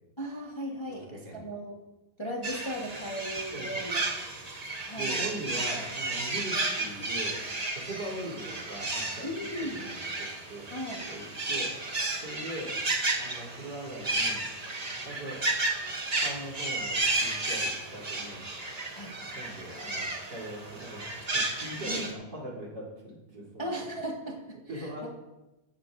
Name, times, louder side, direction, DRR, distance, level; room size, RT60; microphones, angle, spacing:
voice 1, 0.2-1.8 2.2-4.2 4.8-5.2 9.2-9.9 10.7-11.1 18.9-19.1 21.9-22.1 23.6-25.1, equal, 15° left, -1 dB, 1.3 m, -37 dB
voice 2, 0.9-1.5 3.5-4.1 4.9-7.4 7.7-9.3 9.7-10.7 11.1-11.8 12.2-12.8 13.1-14.4 15.0-15.4 16.1-18.4 19.3-23.7 24.7-25.1, right 1 dB, 70° right, -4 dB, 4.3 m, -41 dB
sound 1, 2.4-22.1, right 2 dB, 25° right, 1.1 m, -33 dB
14.5 x 13.0 x 2.7 m, 1.0 s
omnidirectional pair, 2.0 m